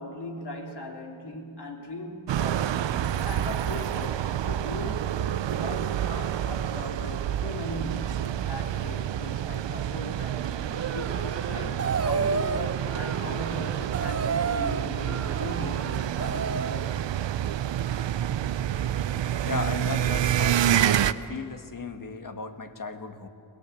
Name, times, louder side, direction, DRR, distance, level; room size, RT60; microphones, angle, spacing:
voice 1, 0.0-10.6 10.9-17.2, left 1 dB, 65° left, 2 dB, 3.4 m, -39 dB
sound 1, 2.3-21.1, right 10 dB, 80° right, 0.7 m, -28 dB
sound 2, 10.7-16.8, right 5 dB, 35° right, 0.8 m, -32 dB
voice 2, 19.4-23.3, left 4 dB, 45° left, 7 dB, 1.8 m, -36 dB
22.0 x 18.0 x 8.6 m, 2.5 s
cardioid pair, 55°, 44 cm